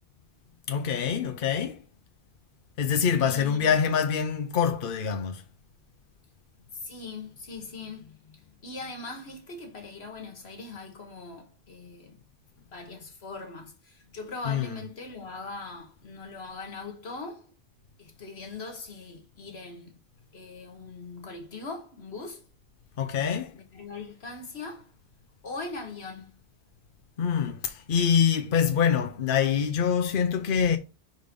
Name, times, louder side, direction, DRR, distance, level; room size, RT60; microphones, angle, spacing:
voice 1, 0.7-1.8 2.8-5.4 14.5-14.7 23.0-23.6 27.2-30.8, left 7 dB, 60° left, 0.8 m, -25 dB
voice 2, 3.2-3.9 6.7-12.2 12.7-17.5 18.0-20.0 20.3-22.5 23.5-24.9 25.4-26.4, left 3 dB, 80° left, 1.6 m, -41 dB
5.2 x 3.9 x 5.1 m
omnidirectional pair, 1.1 m